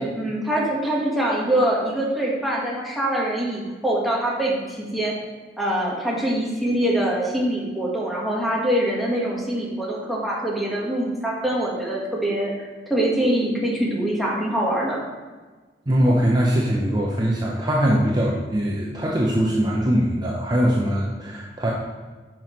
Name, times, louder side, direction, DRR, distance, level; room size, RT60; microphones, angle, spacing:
voice 1, 0.0-5.1 5.6-15.0, right 1 dB, ahead, -5 dB, 1.4 m, -24 dB
voice 2, 15.9-21.7, equal, 25° right, -3 dB, 0.7 m, -21 dB
8.9 x 5.9 x 3.1 m, 1.4 s
head